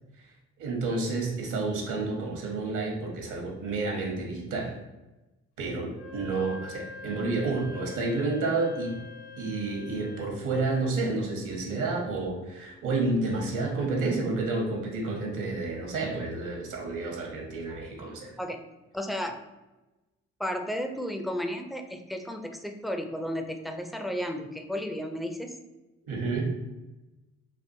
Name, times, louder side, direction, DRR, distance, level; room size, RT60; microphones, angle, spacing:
voice 1, 0.6-4.8 5.6-9.0 9.4-18.3 26.1-26.5, right 3 dB, 70° right, 0 dB, 1.0 m, -30 dB
Wind instrument woodwind instrument, 5.9-10.4, left 4 dB, 75° left, 0.6 m, -45 dB
voice 2, 18.9-19.4 20.4-25.5, equal, ahead, 5 dB, 0.4 m, -33 dB
3.6 x 2.5 x 2.6 m, 1.1 s
hypercardioid pair, 50°, 32 cm